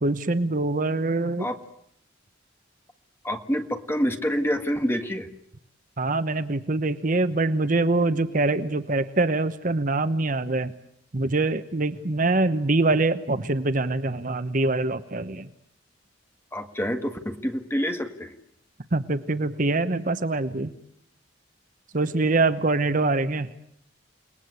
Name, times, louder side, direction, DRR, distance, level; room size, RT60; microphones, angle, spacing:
voice 1, 0.0-1.5 6.0-10.7 11.1-15.5 18.9-20.7 21.9-23.5, right 2 dB, 45° right, 12 dB, 1.0 m, -24 dB
voice 2, 3.2-5.3 16.5-18.3, equal, 10° left, 6 dB, 1.9 m, -27 dB
30.0 x 20.0 x 8.2 m, 0.73 s
head